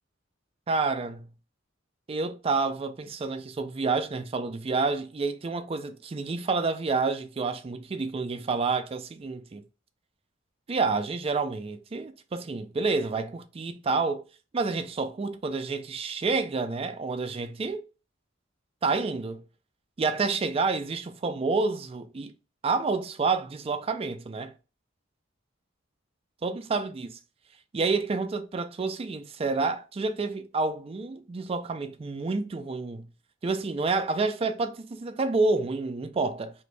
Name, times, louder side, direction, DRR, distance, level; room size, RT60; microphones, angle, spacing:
voice 1, 0.7-1.2 2.1-9.6 10.7-14.3 14.5-17.8 18.8-19.4 20.0-22.3 22.6-24.5 26.4-27.2 27.7-33.1 33.4-36.5, right 4 dB, 30° right, 0.4 m, -29 dB
2.9 x 2.6 x 3.3 m
head